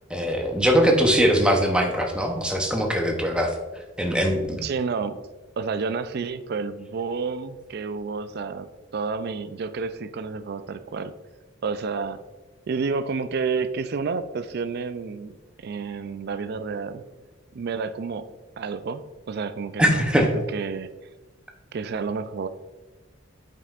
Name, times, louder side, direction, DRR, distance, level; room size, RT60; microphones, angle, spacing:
voice 1, 0.1-3.5 4.0-4.6 19.8-20.3, equal, 5° right, 2 dB, 0.7 m, -21 dB
voice 2, 4.5-5.2 5.6-11.1 11.6-12.2 12.7-17.0 17.5-18.3 18.6-20.9 21.7-22.5, right 5 dB, 55° right, 12 dB, 0.4 m, -30 dB
8.2 x 5.4 x 2.5 m, 1.2 s
head